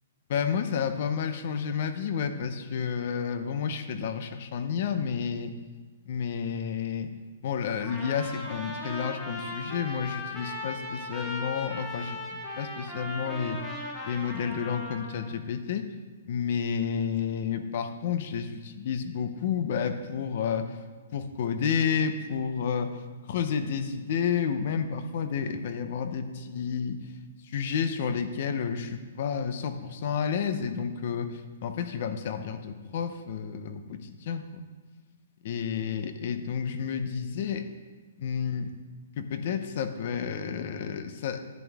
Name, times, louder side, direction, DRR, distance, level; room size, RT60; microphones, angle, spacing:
voice 1, 0.3-5.5 6.1-7.1 7.4-12.2 12.6-13.6 14.0-15.9 16.2-20.7 21.1-22.9 23.3-27.0 27.4-34.4 35.4-37.7 38.2-38.7 39.2-41.4, left 7 dB, 45° left, 9 dB, 0.6 m, -30 dB
Trumpet, 7.8-15.3, left 1 dB, 10° left, 1.1 m, -38 dB
10.5 x 8.3 x 3.5 m, 1.4 s
hypercardioid pair, 170°, 0 cm